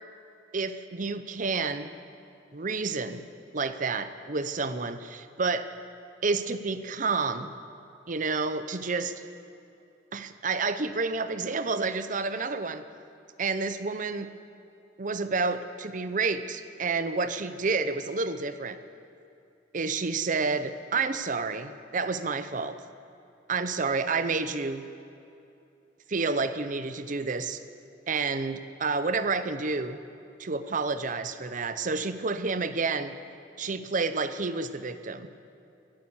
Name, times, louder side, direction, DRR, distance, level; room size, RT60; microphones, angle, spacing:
voice 1, 0.5-1.9 2.5-3.2 3.5-5.7 6.2-7.5 8.1-9.2 10.1-12.8 13.4-14.3 15.0-18.8 19.7-22.8 23.5-24.8 26.1-27.6 28.1-30.0 30.4-33.1 33.6-35.3, right 4 dB, 45° right, 11 dB, 0.7 m, -29 dB
17.0 x 11.5 x 7.1 m, 2.6 s
head